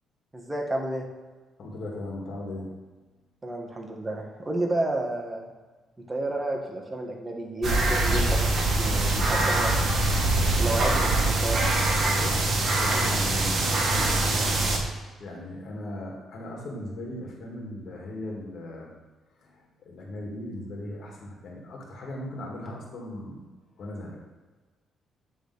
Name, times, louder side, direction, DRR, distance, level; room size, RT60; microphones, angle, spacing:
voice 1, 0.3-1.1 3.4-5.5 6.1-8.5 8.7-9.7 10.6-11.6, right 2 dB, 20° right, 1 dB, 1.3 m, -31 dB
voice 2, 1.6-2.8 12.1-14.6 15.2-18.9 19.4-23.4 23.8-24.2, left 1 dB, 60° left, -1 dB, 1.8 m, -38 dB
sound 1, 7.6-14.8, right 2 dB, 55° right, 1.3 m, -23 dB
9.3 x 3.4 x 4.0 m, 1.3 s
cardioid pair, 90°, 0 cm